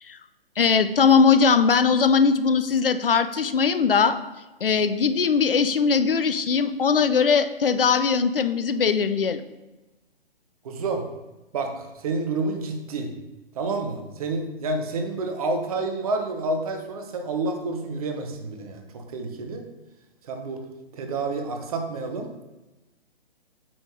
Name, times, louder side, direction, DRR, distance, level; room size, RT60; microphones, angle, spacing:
voice 1, 0.6-4.2 4.6-9.4, left 5 dB, 65° left, 12 dB, 0.7 m, -20 dB
voice 2, 10.6-11.1 11.5-13.1 13.5-19.6 20.2-20.6 20.9-22.3, right 3 dB, 35° right, 4 dB, 1.2 m, -29 dB
8.8 x 4.1 x 4.8 m, 1.1 s
figure-of-eight pair, 130°, 30 cm